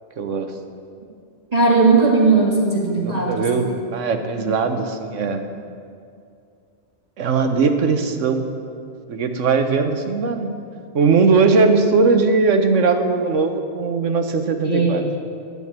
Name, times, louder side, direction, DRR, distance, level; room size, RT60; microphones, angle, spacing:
voice 1, 0.2-0.5 3.0-5.5 7.2-8.5 9.1-10.5 10.9-15.0, right 4 dB, 85° right, 7 dB, 1.3 m, -19 dB
voice 2, 1.5-3.8 4.5-4.6 14.6-15.1, right 3 dB, 30° right, -3 dB, 1.7 m, -18 dB
12.0 x 7.1 x 8.7 m, 2.4 s
omnidirectional pair, 1.3 m